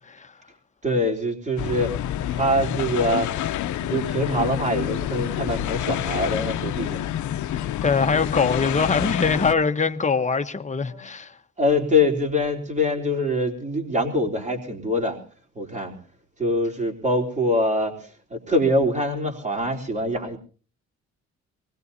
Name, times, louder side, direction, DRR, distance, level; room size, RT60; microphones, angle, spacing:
voice 1, 0.8-2.0 2.3-3.3 3.8-7.0 10.9-11.1 11.6-15.2 15.6-15.9 16.4-20.4, left 1 dB, 25° right, 3.7 m, -24 dB
sound 1, 1.6-9.5, left 12 dB, 70° left, 0.7 m, -28 dB
voice 2, 7.5-11.3, left 4 dB, 25° left, 1.1 m, -23 dB
24.5 x 20.5 x 2.8 m
cardioid pair, 90°, 30 cm